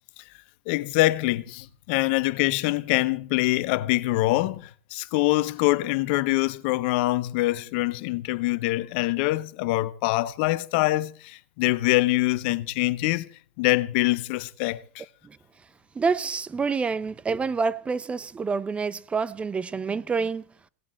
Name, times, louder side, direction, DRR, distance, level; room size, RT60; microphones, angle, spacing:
voice 1, 0.7-13.3 13.6-15.0, left 19 dB, 60° left, 0.9 m, -24 dB
voice 2, 16.0-20.4, right 5 dB, 20° right, 0.6 m, -27 dB
18.0 x 7.3 x 7.6 m
hypercardioid pair, 100°, 6 cm